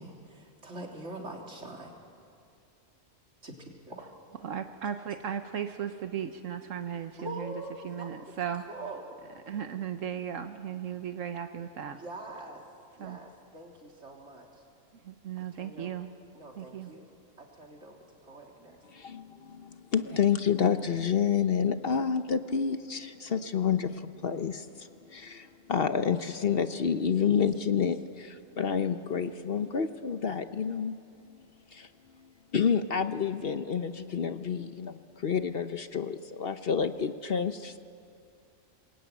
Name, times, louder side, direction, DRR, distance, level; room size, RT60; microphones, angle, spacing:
voice 1, 0.0-1.9 3.4-4.0 7.2-9.2 12.0-12.6 13.0-14.5 15.5-15.9 16.3-17.0 17.4-18.8, right 1 dB, 60° right, 0 dB, 3.7 m, -44 dB
voice 2, 4.4-8.6 9.5-12.0 13.0-13.2 15.0-16.1 16.6-16.9, right 8 dB, 80° right, 7 dB, 1.4 m, -36 dB
voice 3, 19.9-23.9 24.2-24.5 25.7-28.0 28.6-30.9 32.5-34.9 35.2-37.5, left 7 dB, 50° left, 10 dB, 1.0 m, -28 dB
27.0 x 22.0 x 9.2 m, 2.5 s
omnidirectional pair, 1.3 m